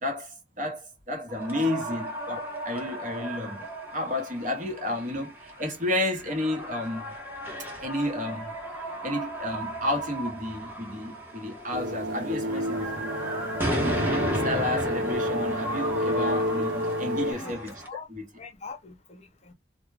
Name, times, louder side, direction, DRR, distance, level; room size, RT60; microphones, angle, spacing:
voice 1, 0.0-7.1 7.8-8.5 9.0-13.1 13.7-17.8 18.1-18.3, left 1 dB, 45° right, 1.0 m, -31 dB
sound 1, 1.3-17.9, right 1 dB, 10° right, 1.0 m, -35 dB
sound 2, 11.7-17.3, equal, 80° right, 0.9 m, -29 dB
voice 2, 17.2-18.1 18.4-19.5, left 4 dB, 40° left, 0.6 m, -42 dB
2.3 x 2.1 x 3.2 m
head